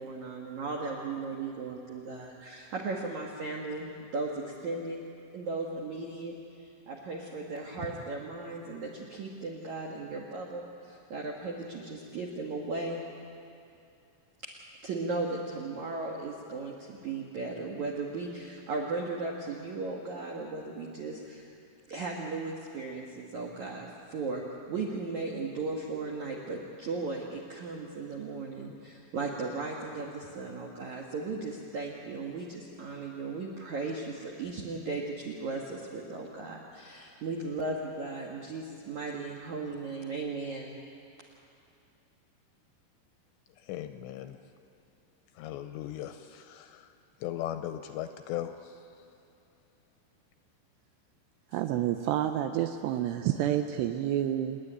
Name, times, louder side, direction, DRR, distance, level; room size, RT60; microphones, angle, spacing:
voice 1, 0.0-5.0 5.3-13.1 14.4-14.5 14.8-21.5 21.9-24.4 24.7-40.8, right 3 dB, 65° right, -2 dB, 1.9 m, -36 dB
voice 2, 43.7-44.4 45.4-46.9 47.2-48.7, left 12 dB, 80° left, 8 dB, 2.7 m, -37 dB
voice 3, 51.5-54.6, right 11 dB, 80° right, 8 dB, 2.5 m, -29 dB
28.0 x 10.0 x 10.0 m, 2.7 s
omnidirectional pair, 5.5 m